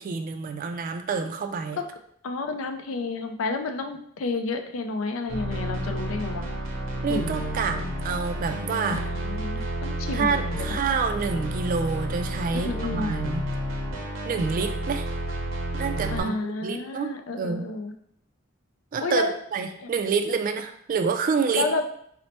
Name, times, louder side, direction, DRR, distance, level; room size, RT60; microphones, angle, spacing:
voice 1, 0.0-1.8 7.0-7.8 8.0-9.0 9.6-9.7 10.1-13.4 14.2-15.1 15.7-16.4 16.6-17.1 17.4-17.6 18.9-19.2 19.5-21.6, right 5 dB, 45° right, 7 dB, 0.3 m, -27 dB
voice 2, 2.2-6.5 7.1-7.4 7.7-8.0 8.9-10.7 12.5-13.1 16.1-17.9 19.0-19.3 19.8-19.9 21.5-21.8, left 3 dB, 85° left, 6 dB, 0.4 m, -30 dB
sound 1, 5.3-16.2, right 1 dB, 90° right, 0.7 m, -31 dB
4.2 x 2.0 x 2.9 m, 0.69 s
head